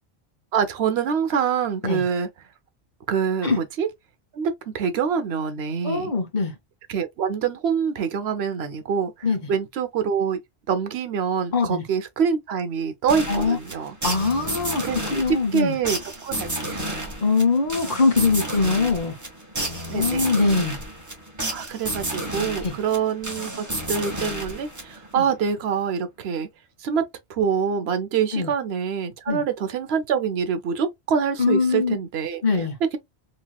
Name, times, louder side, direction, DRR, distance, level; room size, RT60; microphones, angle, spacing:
voice 1, 0.5-2.3 3.1-3.9 4.3-6.1 6.9-10.4 10.7-14.0 14.8-17.1 19.6-20.3 21.4-26.5 26.8-32.7, right 7 dB, 70° right, 0.9 m, -26 dB
voice 2, 5.8-6.5 9.2-9.4 11.5-11.8 13.3-13.6 14.0-14.8 15.1-15.8 17.2-19.1 19.9-20.8 22.6-22.7 25.2-25.3 28.3-28.5 29.3-29.4 31.4-32.0 32.4-32.7, left 4 dB, 45° left, 1.0 m, -22 dB
sound 1, 13.1-25.2, right 1 dB, 20° right, 0.9 m, -31 dB
3.1 x 2.8 x 2.3 m
omnidirectional pair, 1.1 m